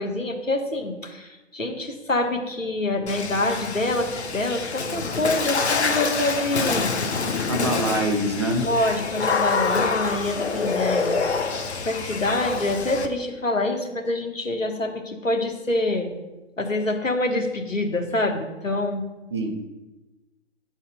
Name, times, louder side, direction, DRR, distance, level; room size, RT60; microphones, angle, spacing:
voice 1, 0.0-6.9 8.6-11.2 11.8-16.1 16.6-19.0, left 2 dB, 90° left, 4 dB, 1.3 m, -26 dB
Water / Splash splatter, 3.1-13.1, left 4 dB, 60° left, 1.0 m, -26 dB
voice 2, 7.5-8.7 19.3-19.7, right 1 dB, 20° right, 3 dB, 0.6 m, -25 dB
9.1 x 4.2 x 6.4 m, 1.1 s
figure-of-eight pair, 135°, 38 cm